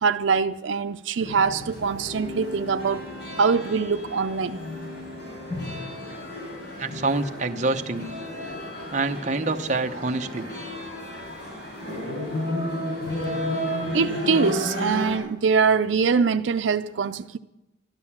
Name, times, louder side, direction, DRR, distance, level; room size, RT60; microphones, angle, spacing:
voice 1, 0.0-3.1 3.4-4.6 13.9-17.4, right 5 dB, 85° right, 0.5 m, -23 dB
sound 1, 1.2-15.2, left 1 dB, 60° left, 6.0 m, -33 dB
voice 2, 6.8-8.1 8.9-10.5, right 3 dB, 40° right, 0.8 m, -26 dB
13.0 x 12.0 x 7.2 m
head